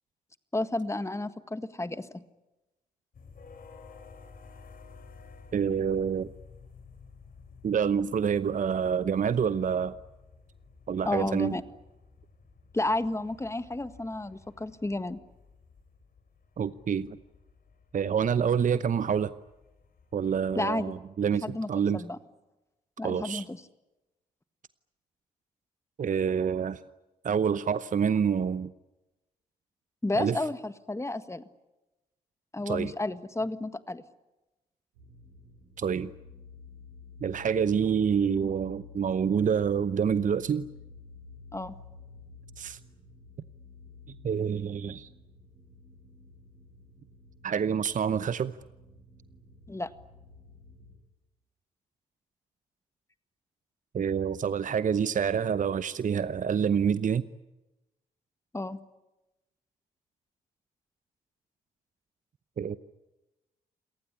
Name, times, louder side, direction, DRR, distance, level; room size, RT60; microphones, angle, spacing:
voice 1, 0.5-2.2 11.0-11.6 12.7-15.2 20.5-21.0 21.4-22.2 23.0-23.6 30.0-31.4 32.5-34.0 41.5-41.7 49.7-49.9 58.5-58.8, left 2 dB, 15° left, 1.7 m, -32 dB
sound 1, 3.1-20.6, left 4 dB, 50° left, 3.8 m, -53 dB
voice 2, 5.5-6.3 7.6-9.9 10.9-11.5 16.6-17.2 17.9-19.3 20.1-22.0 23.0-23.4 26.0-26.8 27.2-28.7 30.1-30.4 32.7-32.9 35.8-36.1 37.2-40.7 42.6-42.8 44.2-45.1 47.4-48.6 53.9-57.2 62.6-62.8, right 7 dB, 45° right, 0.9 m, -27 dB
sound 2, 34.9-51.0, left 4 dB, 85° right, 7.5 m, -51 dB
28.0 x 19.0 x 9.9 m
hypercardioid pair, 45°, 19 cm